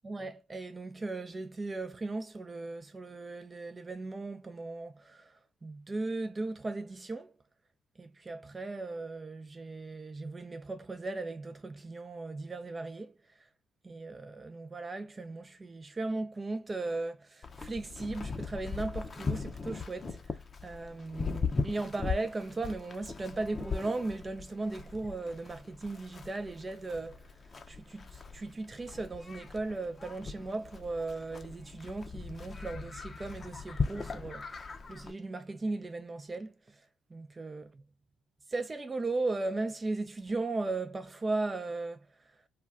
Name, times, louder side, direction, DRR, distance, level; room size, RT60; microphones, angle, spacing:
voice 1, 0.0-5.3 5.6-7.3 8.0-13.1 13.8-20.2 20.6-27.2 27.7-34.5 34.9-36.5 37.1-37.7 38.5-42.1, right 3 dB, 30° right, 0.5 m, -37 dB
Livestock farm animals working animals, 17.4-35.1, left 4 dB, 35° left, 0.6 m, -39 dB
2.3 x 2.2 x 3.6 m
hypercardioid pair, 50°, 0 cm